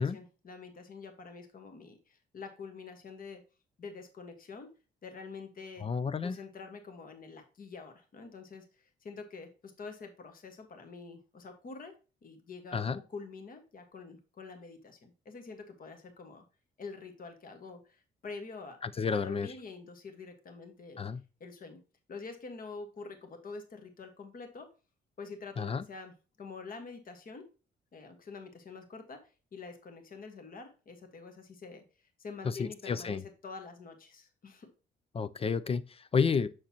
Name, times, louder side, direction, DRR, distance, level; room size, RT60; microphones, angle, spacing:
voice 1, 0.0-3.4 3.8-4.7 5.0-5.9 6.2-11.9 12.2-16.4 16.8-18.8 19.1-21.0 21.4-21.8 22.1-24.7 25.2-27.5 27.9-29.2 29.5-34.7, left 4 dB, 45° left, 1.4 m, -46 dB
voice 2, 5.8-6.4 12.7-13.0 18.8-19.5 21.0-21.2 25.6-25.8 32.4-33.2 35.1-36.5, left 5 dB, 30° left, 0.4 m, -31 dB
6.4 x 6.1 x 2.8 m
cardioid pair, 90°, 20 cm